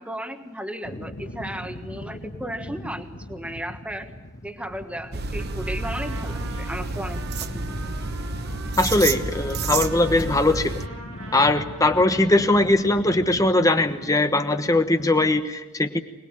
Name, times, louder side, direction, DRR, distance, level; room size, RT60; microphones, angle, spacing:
voice 1, 0.0-4.1 4.4-7.8, equal, 5° right, 7 dB, 1.5 m, -35 dB
sound 1, 0.8-15.4, left 1 dB, 45° left, 1.7 m, -40 dB
sound 2, 5.1-10.9, right 3 dB, 45° right, 1.0 m, -30 dB
Trumpet, 5.4-13.2, right 3 dB, 85° right, 6.3 m, -43 dB
voice 2, 8.8-10.8 11.3-16.0, left 2 dB, 15° left, 8 dB, 1.1 m, -20 dB
25.5 x 20.0 x 8.9 m, 1.1 s
head